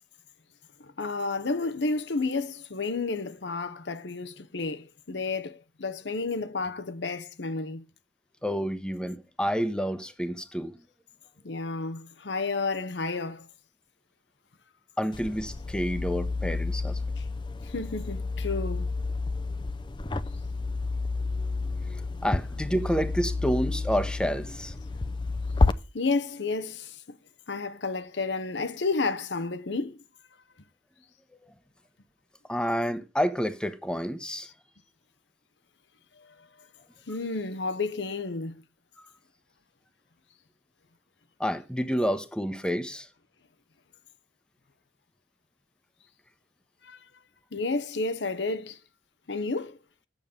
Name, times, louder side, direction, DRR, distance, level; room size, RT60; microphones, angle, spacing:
voice 1, 0.8-7.8 11.4-13.5 17.2-17.3 17.6-18.9 25.9-27.2 27.5-30.0 34.4-34.5 37.1-38.5 46.8-47.0 47.5-48.8 49.3-49.8, left 3 dB, 75° left, 0.8 m, -31 dB
voice 2, 8.4-10.7 15.0-17.0 22.2-24.7 32.5-34.5 41.4-43.1, equal, 5° left, 0.9 m, -29 dB
sound 1, 15.1-25.7, left 3 dB, 25° left, 0.6 m, -30 dB
9.1 x 7.2 x 5.0 m
head